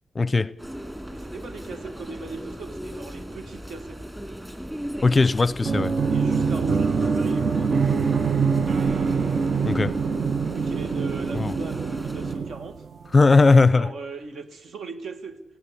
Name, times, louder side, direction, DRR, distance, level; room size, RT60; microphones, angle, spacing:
voice 1, 0.2-0.5 5.0-5.9 9.6-9.9 11.3-11.5 13.1-13.9, left 3 dB, 25° left, 0.6 m, -18 dB
sound 1, 0.6-12.4, equal, 10° right, 2.8 m, -37 dB
voice 2, 1.1-4.1 6.1-8.5 10.4-12.9 13.7-15.4, right 4 dB, 65° right, 1.9 m, -38 dB
sound 2, 5.6-13.2, right 5 dB, 45° right, 0.7 m, -24 dB
20.5 x 16.0 x 8.4 m
wide cardioid pair, 140°, 0 cm